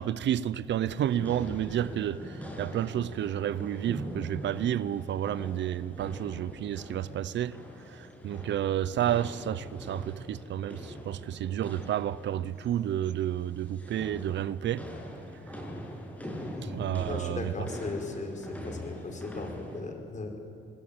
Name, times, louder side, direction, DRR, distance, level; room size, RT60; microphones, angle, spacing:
voice 1, 0.0-7.6 7.9-14.9 16.7-17.5, right 11 dB, 65° right, 0.7 m, -31 dB
sound 1, 0.9-19.8, equal, 5° left, 7.5 m, -42 dB
voice 2, 16.5-20.4, left 3 dB, 40° left, 5.0 m, -38 dB
26.0 x 20.5 x 8.9 m
cardioid pair, 90°, 20 cm